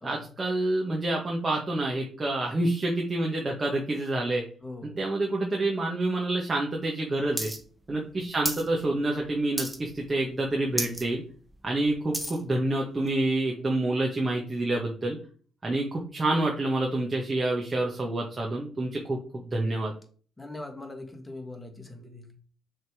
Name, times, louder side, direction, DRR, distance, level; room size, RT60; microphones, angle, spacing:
voice 1, 0.0-4.4 4.8-7.5 7.9-11.2 11.6-15.2 15.6-19.9, right 2 dB, 25° right, -1 dB, 1.4 m, -28 dB
voice 2, 4.6-5.0 7.9-8.0 20.4-22.3, left 2 dB, 15° left, 4 dB, 1.7 m, -41 dB
sound 1, 7.4-7.6 7.8-8.7 9.0-9.3 9.6-10.0 10.4-10.5 10.7-11.0 11.5-12.4 13.1-13.2, right 1 dB, 10° right, 1.4 m, -32 dB
6.3 x 3.7 x 4.8 m, 0.43 s
cardioid pair, 90°, 0 cm